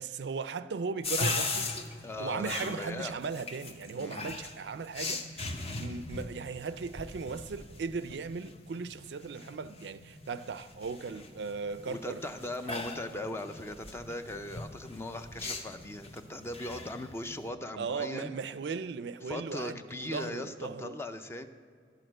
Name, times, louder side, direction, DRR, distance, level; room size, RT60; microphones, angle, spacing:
voice 1, 0.0-1.8 2.2-5.2 5.8-12.2 12.6-12.8 17.8-21.0, right 5 dB, 75° right, 0.4 m, -37 dB
sound 1, 1.0-17.5, left 3 dB, 35° left, 0.8 m, -40 dB
voice 2, 2.0-3.2 3.9-4.3 11.9-18.4 19.3-21.5, left 1 dB, 15° left, 0.5 m, -39 dB
11.5 x 6.5 x 7.8 m
head